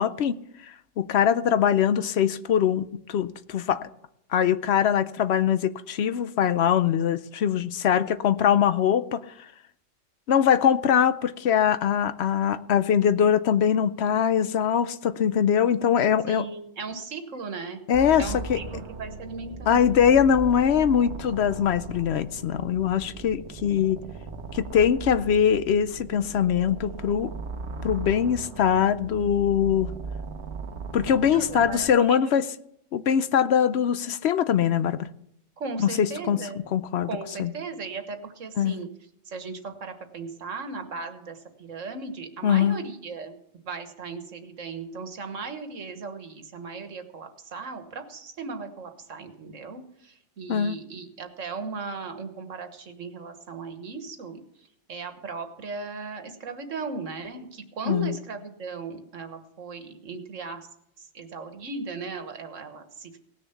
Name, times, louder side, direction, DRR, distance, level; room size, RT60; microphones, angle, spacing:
voice 1, 0.0-3.9 4.3-9.2 10.3-16.4 17.9-18.6 19.7-24.0 24.5-27.3 27.8-29.9 30.9-32.5 32.9-35.1 35.8-36.4 36.7-37.1 37.4-37.5 38.6-38.8 42.4-42.8 50.5-50.8 57.9-58.2, left 8 dB, 65° left, 0.9 m, -22 dB
voice 2, 16.3-17.8 18.2-19.9 31.2-32.3 35.6-36.6 37.0-38.9 39.3-43.4 43.7-54.4 54.9-60.7 61.0-63.2, right 4 dB, 85° right, 1.7 m, -37 dB
sound 1, 17.9-31.9, right 4 dB, 65° right, 1.2 m, -38 dB
17.5 x 6.7 x 7.0 m
omnidirectional pair, 1.3 m